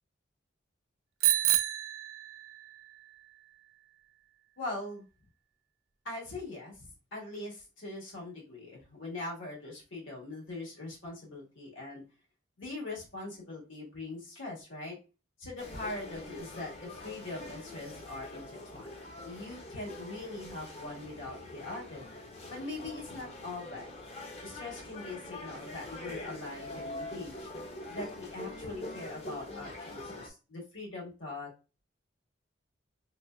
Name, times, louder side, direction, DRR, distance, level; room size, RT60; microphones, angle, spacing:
Bicycle bell, 1.2-2.8, right 12 dB, 90° right, 0.4 m, -28 dB
voice 1, 4.6-5.1 6.0-12.0 12.6-15.0 15.4-22.2 22.5-23.9 24.4-27.5 27.9-31.5, left 2 dB, 75° left, -2 dB, 1.6 m, -42 dB
sound 1, 15.6-30.3, left 1 dB, 30° left, 0.5 m, -44 dB
3.1 x 3.1 x 2.3 m, 0.31 s
head